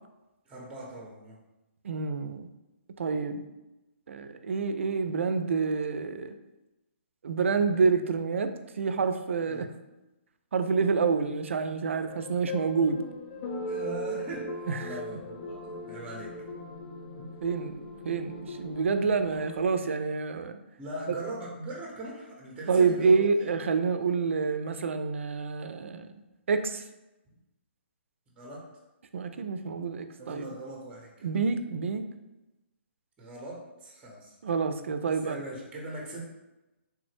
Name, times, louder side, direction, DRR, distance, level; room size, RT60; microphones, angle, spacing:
voice 1, 0.5-1.4 9.5-9.7 13.7-16.3 20.8-23.5 28.4-28.6 30.2-31.3 33.2-34.3 35.1-36.2, right 1 dB, 15° right, -2 dB, 0.6 m, -40 dB
voice 2, 1.8-2.5 3.0-3.4 4.1-6.3 7.2-9.7 10.5-13.0 14.7-14.9 17.4-20.6 22.7-26.1 26.5-26.8 29.1-30.4 31.2-32.0 34.4-35.4, right 5 dB, 75° right, 9 dB, 0.3 m, -28 dB
sound 1, 11.8-19.7, left 1 dB, 45° left, 0.4 m, -39 dB
3.2 x 2.0 x 3.2 m, 1.0 s
hypercardioid pair, 150°, 7 cm